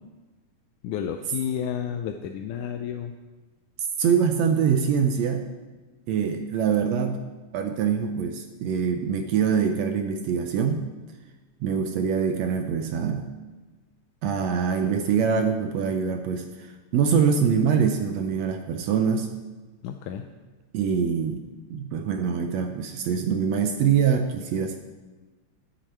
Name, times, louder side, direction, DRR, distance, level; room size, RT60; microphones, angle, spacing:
voice 1, 0.8-3.1 19.8-20.3, left 8 dB, 80° left, 5 dB, 2.0 m, -31 dB
voice 2, 4.0-5.5 6.1-7.2 7.5-10.8 11.6-13.3 14.2-19.3 20.7-21.4 21.7-24.8, right 7 dB, 75° right, 6 dB, 1.6 m, -24 dB
11.5 x 10.5 x 4.4 m, 1.3 s
omnidirectional pair, 3.6 m